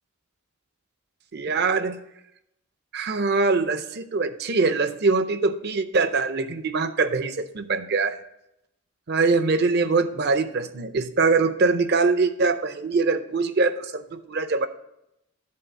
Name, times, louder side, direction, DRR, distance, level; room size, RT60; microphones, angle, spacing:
voice 1, 1.3-2.0 2.9-8.2 9.1-14.7, right 4 dB, 50° right, 11 dB, 0.6 m, -23 dB
10.5 x 3.9 x 6.8 m, 0.82 s
head